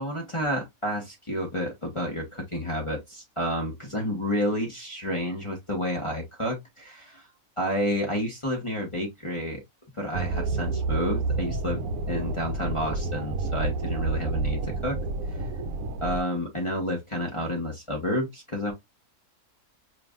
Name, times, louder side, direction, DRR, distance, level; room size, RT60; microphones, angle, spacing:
voice 1, 0.0-7.2 7.6-9.6 10.0-15.0 16.0-18.7, equal, 20° left, 1.3 m, -30 dB
sound 1, 10.1-16.2, right 3 dB, 75° right, 1.1 m, -29 dB
5.0 x 3.3 x 2.4 m
omnidirectional pair, 1.5 m